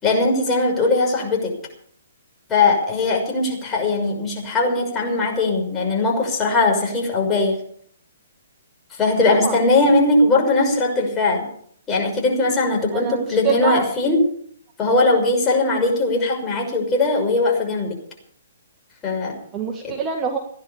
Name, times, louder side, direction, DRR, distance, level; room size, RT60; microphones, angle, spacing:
voice 1, 0.0-1.5 2.5-7.6 9.0-11.5 11.9-14.2 14.8-18.0 19.0-19.3 19.8-19.9, left 2 dB, 15° left, 0 dB, 6.1 m, -19 dB
voice 2, 9.3-9.7 12.9-13.8 19.5-20.4, right 7 dB, 20° right, 1 dB, 1.7 m, -25 dB
17.0 x 10.5 x 7.1 m, 0.63 s
hypercardioid pair, 135°, 0 cm